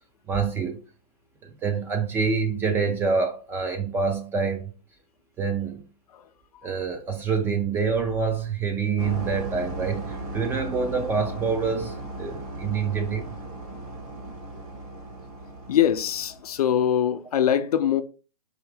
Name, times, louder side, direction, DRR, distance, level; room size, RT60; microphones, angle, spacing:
voice 1, 0.3-0.8 1.4-4.7 5.4-5.9 6.6-13.3, right 5 dB, 10° right, 0.3 m, -26 dB
sound 1, 9.0-16.6, right 2 dB, 60° right, 1.4 m, -36 dB
voice 2, 15.7-18.0, left 9 dB, 65° left, 0.5 m, -22 dB
4.6 x 2.7 x 3.3 m
hypercardioid pair, 130°, 21 cm